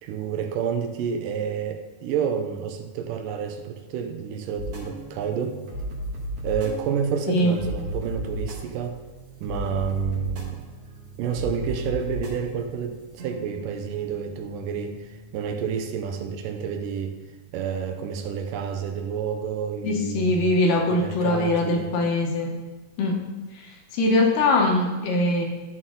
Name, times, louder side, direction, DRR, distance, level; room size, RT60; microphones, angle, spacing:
voice 1, 0.0-5.6 6.4-9.0 9.4-10.6 11.2-17.2 17.5-20.5 20.9-21.9, right 7 dB, 80° right, 5 dB, 2.3 m, -29 dB
sound 1, 4.6-17.1, right 1 dB, 50° right, 2.2 m, -36 dB
voice 2, 7.3-7.6 19.8-22.5 23.0-23.2 23.6-25.5, left 2 dB, 80° left, 1 dB, 2.7 m, -22 dB
12.5 x 4.3 x 3.8 m, 1.2 s
omnidirectional pair, 3.9 m